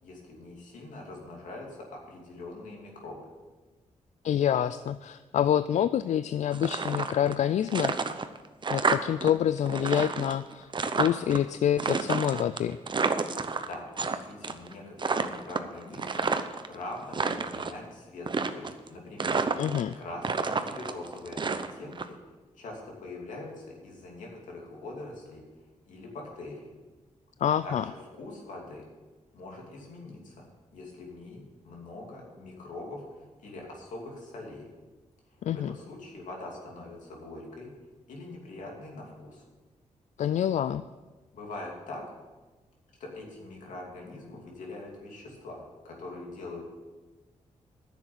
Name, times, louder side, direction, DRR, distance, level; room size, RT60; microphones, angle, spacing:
voice 1, 0.0-3.3 13.6-16.3 16.7-19.4 20.0-22.2 22.5-25.4 25.9-26.7 27.6-28.8 29.3-30.4 30.7-33.0 33.4-34.7 35.5-37.7 38.1-39.4 41.3-42.0 43.0-46.6, left 2 dB, 85° left, -1 dB, 2.8 m, -43 dB
voice 2, 4.2-8.0 8.7-10.7 11.0-12.8 19.6-20.0 27.4-27.8 35.4-35.7 40.2-40.8, left 10 dB, 70° left, 13 dB, 0.4 m, -27 dB
sound 1, 6.5-7.4 7.7-9.3 9.6-11.4 11.8-14.2 14.4-14.7 15.0-16.7 17.0-17.8 18.3-18.9 19.2-19.9 20.2-22.0, right 4 dB, 40° right, 0.8 m, -29 dB
9.9 x 7.2 x 7.9 m, 1.3 s
cardioid pair, 70°, 13 cm